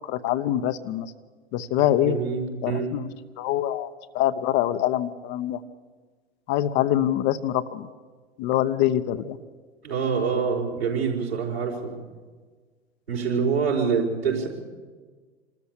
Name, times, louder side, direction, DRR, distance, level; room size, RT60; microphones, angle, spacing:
voice 1, 0.1-1.1 1.5-2.2 2.6-5.6 6.5-7.9 8.4-9.4, left 12 dB, 35° left, 11 dB, 0.9 m, -24 dB
voice 2, 1.8-2.9 9.8-11.9 13.1-14.5, right 5 dB, 75° right, -1 dB, 5.2 m, -26 dB
26.5 x 13.5 x 8.2 m, 1.5 s
figure-of-eight pair, 90°, 32 cm